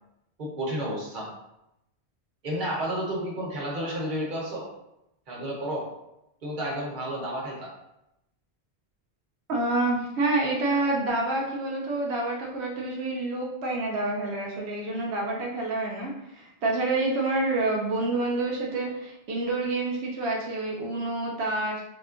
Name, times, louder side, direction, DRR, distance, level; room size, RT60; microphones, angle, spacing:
voice 1, 0.4-1.3 2.4-4.7 5.3-5.9 6.4-7.7, right 1 dB, 50° right, -4 dB, 1.1 m, -31 dB
voice 2, 9.5-21.8, right 2 dB, 90° right, -2 dB, 0.9 m, -28 dB
3.6 x 2.4 x 2.4 m, 0.86 s
omnidirectional pair, 1.1 m